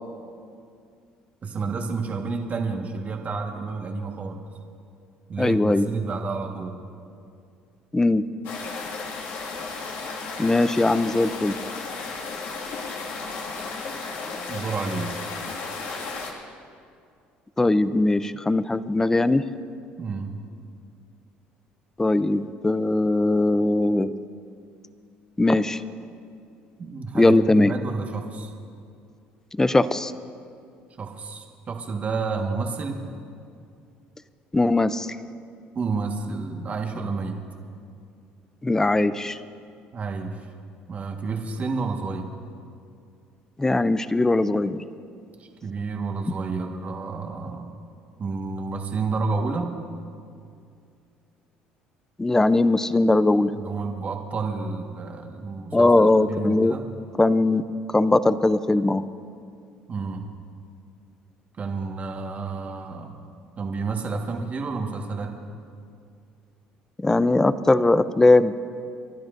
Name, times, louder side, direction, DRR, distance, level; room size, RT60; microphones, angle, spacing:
voice 1, 1.4-4.4 5.3-6.8 14.5-15.1 20.0-20.4 26.8-28.5 31.0-33.0 35.7-37.4 39.9-40.4 40.9-42.3 45.4-47.7 48.2-49.7 53.5-56.9 59.9-60.3 61.6-63.2 63.6-65.3, right 4 dB, 40° right, 2 dB, 1.5 m, -30 dB
voice 2, 5.4-5.8 7.9-8.2 10.4-11.5 17.6-19.4 22.0-24.1 25.4-25.8 27.1-27.7 29.6-30.1 34.5-35.1 38.6-39.4 43.6-44.8 52.2-53.5 55.7-56.7 57.2-57.6 57.9-59.0 67.0-68.5, left 2 dB, 15° left, 14 dB, 0.5 m, -20 dB
sound 1, 8.4-16.3, left 4 dB, 75° left, 2.1 m, -34 dB
30.0 x 12.0 x 2.6 m, 2.4 s
supercardioid pair, 90°, 4 cm